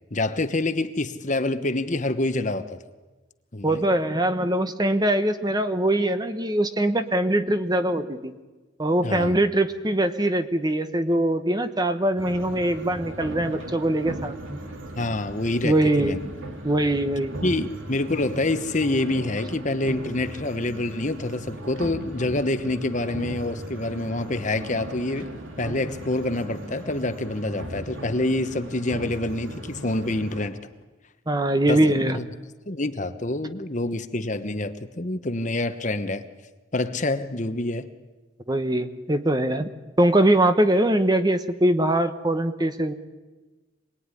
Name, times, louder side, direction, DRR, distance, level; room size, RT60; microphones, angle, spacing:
voice 1, 0.1-2.8 3.5-3.9 9.0-9.4 15.0-16.2 17.4-25.3 25.6-30.6 31.7-31.8 32.1-32.2 32.7-36.2 36.7-37.9, left 2 dB, 40° left, 1.2 m, -27 dB
voice 2, 3.6-8.3 8.8-14.6 15.6-16.2 16.6-17.4 31.3-32.2 38.5-39.7 40.0-42.9, right 1 dB, 20° right, 1.2 m, -22 dB
sound 1, 12.2-30.5, right 1 dB, 85° right, 3.5 m, -38 dB
26.5 x 20.5 x 9.9 m
head